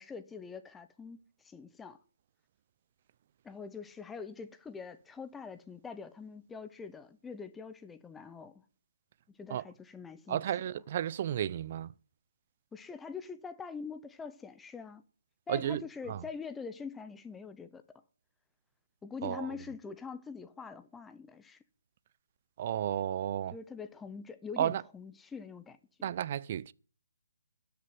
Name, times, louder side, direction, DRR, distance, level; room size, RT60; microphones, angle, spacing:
voice 1, 0.0-2.0 3.4-8.6 9.4-10.4 12.7-15.0 15.5-17.8 19.0-21.6 23.5-26.1, left 5 dB, 5° left, 0.7 m, -44 dB
voice 2, 10.3-11.9 15.5-15.8 16.1-16.2 19.2-19.5 22.6-23.5 24.6-24.8 26.0-26.7, right 10 dB, 40° right, 0.5 m, -33 dB
12.5 x 6.9 x 9.1 m
hypercardioid pair, 155°, 0 cm